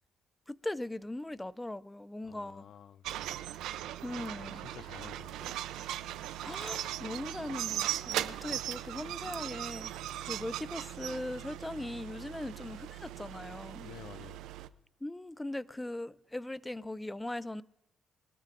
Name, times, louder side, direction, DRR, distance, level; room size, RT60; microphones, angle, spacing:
voice 1, 0.5-2.7 4.0-4.6 6.4-9.9 10.3-13.9 15.0-17.6, left 1 dB, 10° left, 0.4 m, -39 dB
voice 2, 2.2-3.3 4.4-5.9 13.8-14.4, left 8 dB, 65° left, 0.6 m, -51 dB
sound 1, 3.0-14.7, right 13 dB, 90° right, 0.5 m, -39 dB
23.5 x 13.0 x 2.5 m
cardioid pair, 90°, 0 cm